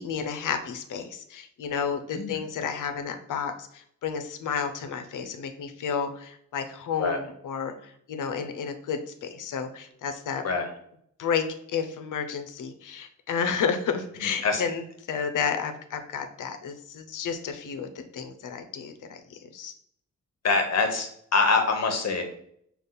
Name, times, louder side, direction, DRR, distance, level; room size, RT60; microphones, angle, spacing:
voice 1, 0.0-10.4 11.2-14.8 15.1-19.7, left 6 dB, 85° left, 7 dB, 0.7 m, -31 dB
voice 2, 14.2-14.6 20.4-22.2, left 4 dB, 55° left, 5 dB, 1.0 m, -25 dB
5.3 x 2.4 x 3.9 m, 0.69 s
wide cardioid pair, 115°, 31 cm